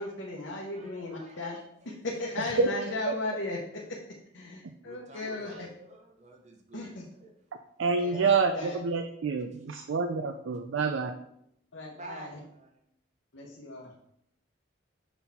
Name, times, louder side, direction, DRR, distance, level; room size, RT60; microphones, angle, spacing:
voice 1, 0.0-1.6 1.8-4.0 4.3-5.7 6.7-7.0 8.0-8.7 11.7-12.3 13.3-13.9, left 2 dB, 75° left, -2 dB, 0.9 m, -36 dB
voice 2, 0.7-2.0 4.8-7.3 9.7-9.8 11.9-12.8, right 2 dB, 35° right, 2 dB, 0.8 m, -50 dB
voice 3, 7.8-11.1, right 4 dB, 75° right, 6 dB, 0.4 m, -27 dB
5.8 x 4.1 x 4.2 m, 0.75 s
head